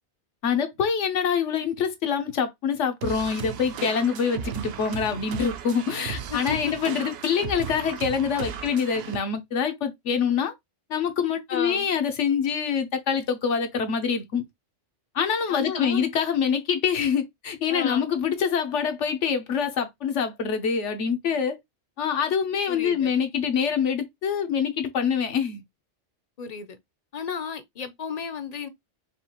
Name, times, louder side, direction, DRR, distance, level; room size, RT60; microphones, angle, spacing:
voice 1, 0.4-10.5 10.9-14.4 15.1-21.6 22.0-25.6, left 7 dB, 80° left, 1.1 m, -25 dB
sound 1, 3.0-9.2, right 8 dB, 65° right, 0.7 m, -36 dB
voice 2, 6.3-6.7 11.5-11.9 15.5-16.0 17.7-18.1 22.7-23.1 26.4-26.8 27.1-28.7, left 6 dB, 45° left, 0.6 m, -33 dB
5.3 x 2.4 x 2.9 m
omnidirectional pair, 1.2 m